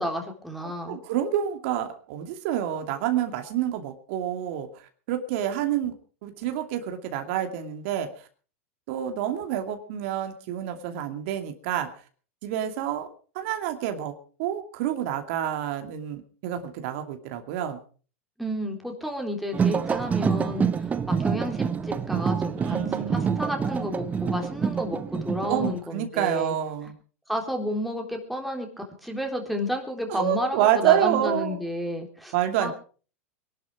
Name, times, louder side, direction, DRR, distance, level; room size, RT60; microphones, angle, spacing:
voice 1, 0.0-1.0 18.4-22.8 23.1-26.5 27.3-28.7 29.0-32.3 32.6-32.7, equal, ahead, 1 dB, 3.7 m, -31 dB
voice 2, 0.6-5.9 6.2-8.1 8.9-11.9 12.4-13.1 13.3-14.1 14.4-17.8 22.6-23.4 25.5-26.9 30.1-31.6 32.3-32.7, right 10 dB, 60° right, 6 dB, 2.6 m, -28 dB
sound 1, 19.5-25.8, right 6 dB, 20° right, 1.0 m, -27 dB
22.5 x 12.0 x 4.8 m, 0.40 s
hypercardioid pair, 115°, 8 cm